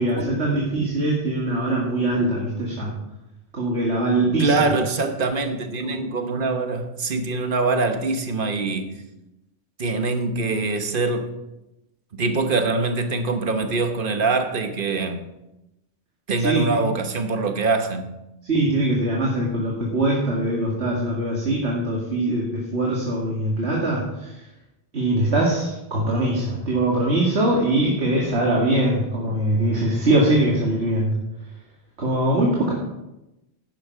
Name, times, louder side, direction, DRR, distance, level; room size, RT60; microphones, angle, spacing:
voice 1, 0.0-2.9 3.5-4.7 5.8-6.0 16.4-16.6 18.4-24.3 24.9-31.1 32.0-32.7, right 1 dB, 90° right, 2.2 m, -22 dB
voice 2, 4.4-9.0 9.8-11.3 12.1-15.3 16.3-18.1, right 3 dB, 55° right, 1.3 m, -24 dB
11.5 x 10.5 x 4.6 m
omnidirectional pair, 1.1 m